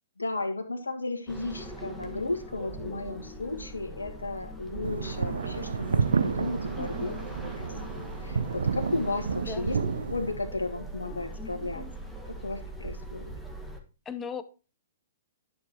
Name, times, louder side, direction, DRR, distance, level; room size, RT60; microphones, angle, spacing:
voice 1, 0.2-7.1 7.6-7.7 8.2-9.8 10.1-11.8 12.3-13.2, left 2 dB, 80° left, 1.6 m, -34 dB
sound 1, 1.3-13.8, right 1 dB, ahead, 1.5 m, -41 dB
sound 2, 4.8-10.3, right 5 dB, 70° right, 0.5 m, -30 dB
voice 2, 6.7-7.3 9.4-9.7 14.0-14.4, left 6 dB, 15° left, 0.8 m, -38 dB
11.0 x 6.9 x 2.9 m
figure-of-eight pair, 115°, 0 cm